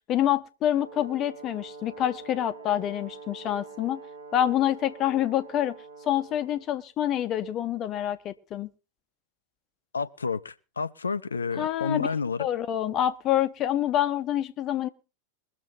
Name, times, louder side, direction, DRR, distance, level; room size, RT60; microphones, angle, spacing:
voice 1, 0.1-4.0 4.3-5.7 6.0-8.7 11.6-12.1 12.4-14.9, left 11 dB, 35° left, 1.3 m, -27 dB
Brass instrument, 0.7-6.7, right 4 dB, 70° right, 2.2 m, -45 dB
voice 2, 9.9-12.5, left 5 dB, 75° left, 0.9 m, -30 dB
22.0 x 7.4 x 5.5 m
figure-of-eight pair, 90°, 0 cm